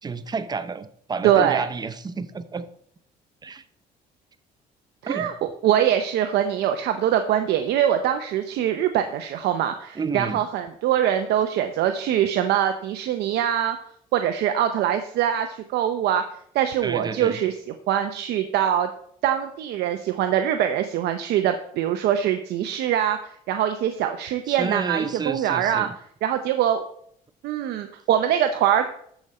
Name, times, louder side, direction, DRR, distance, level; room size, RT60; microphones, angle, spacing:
voice 1, 0.0-2.7 3.4-3.6 5.1-5.3 10.0-10.4 16.8-17.4 24.5-26.0, right 4 dB, 25° right, 12 dB, 0.7 m, -30 dB
voice 2, 1.2-1.6 5.0-5.3 5.6-13.8 14.1-16.2 16.5-17.5 17.9-18.9 19.2-25.9 26.2-26.9 27.4-28.9, right 10 dB, 80° right, 7 dB, 0.7 m, -23 dB
13.5 x 5.0 x 4.2 m, 0.66 s
cardioid pair, 110°, 17 cm